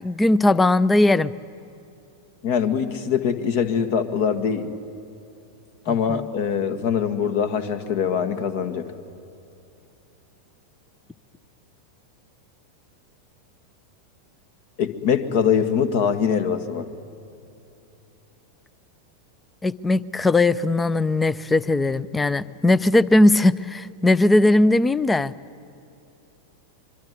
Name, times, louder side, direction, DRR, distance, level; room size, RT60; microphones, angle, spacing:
voice 1, 0.0-1.3 5.9-6.2 19.6-25.3, left 2 dB, 10° left, 21 dB, 0.6 m, -19 dB
voice 2, 2.4-4.7 5.9-8.8 14.8-16.9, left 7 dB, 50° left, 11 dB, 1.7 m, -23 dB
24.5 x 24.0 x 9.5 m, 2.8 s
figure-of-eight pair, 90°, 0 cm